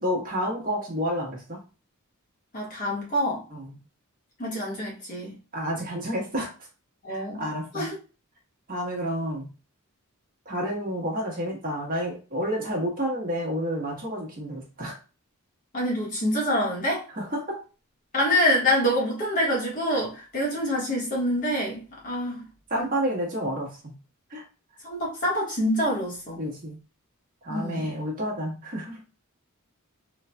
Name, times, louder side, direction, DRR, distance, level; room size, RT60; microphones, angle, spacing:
voice 1, 0.0-1.6 3.5-3.8 5.5-6.5 7.1-7.9 8.7-9.5 10.4-15.0 17.1-17.6 22.7-24.0 24.3-24.4 26.4-26.8 27.4-29.0, equal, 40° right, 1.2 m, -30 dB
voice 2, 2.5-3.4 4.4-5.3 7.0-7.4 7.7-8.0 15.7-17.1 18.1-22.4 22.8-22.9 24.8-26.4 27.5-27.9, equal, 40° left, 1.5 m, -26 dB
3.8 x 3.1 x 2.2 m
head